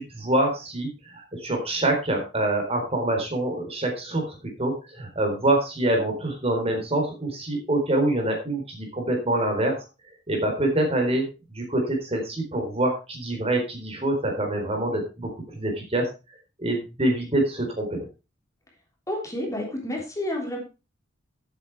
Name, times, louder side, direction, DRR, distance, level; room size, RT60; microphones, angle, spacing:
voice 1, 0.0-9.8 10.3-16.1 16.6-18.1, right 1 dB, 30° right, 2 dB, 4.1 m, -25 dB
voice 2, 19.1-20.6, left 1 dB, 15° left, 0 dB, 3.4 m, -30 dB
12.5 x 8.5 x 4.7 m, 0.31 s
head